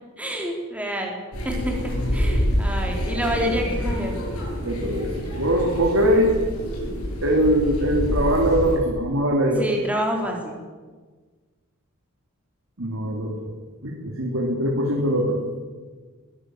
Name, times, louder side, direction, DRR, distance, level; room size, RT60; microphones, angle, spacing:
voice 1, 0.2-1.2 1.4-1.8 2.1-4.1 9.6-10.6, equal, 5° right, 0 dB, 3.9 m, -27 dB
sound 1, 1.3-8.8, equal, 80° left, 7.8 m, -27 dB
voice 2, 4.6-6.3 7.2-9.7 12.8-13.5 13.8-15.4, equal, 65° right, -1 dB, 3.1 m, -22 dB
21.5 x 15.5 x 7.8 m, 1.4 s
head